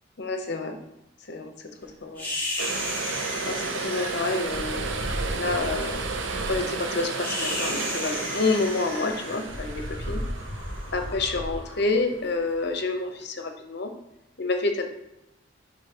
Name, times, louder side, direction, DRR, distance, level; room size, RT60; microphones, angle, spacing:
voice 1, 0.2-0.8 1.3-1.7 2.0-2.3 3.4-6.0 6.5-10.2 10.9-13.9 14.4-14.8, left 3 dB, 65° left, 5 dB, 0.9 m, -28 dB
sound 1, 2.2-12.5, left 1 dB, 10° left, 1.8 m, -34 dB
sound 2, 2.6-12.9 13.2-13.3, right 4 dB, 80° right, 0.7 m, -33 dB
6.6 x 5.3 x 2.9 m, 0.89 s
head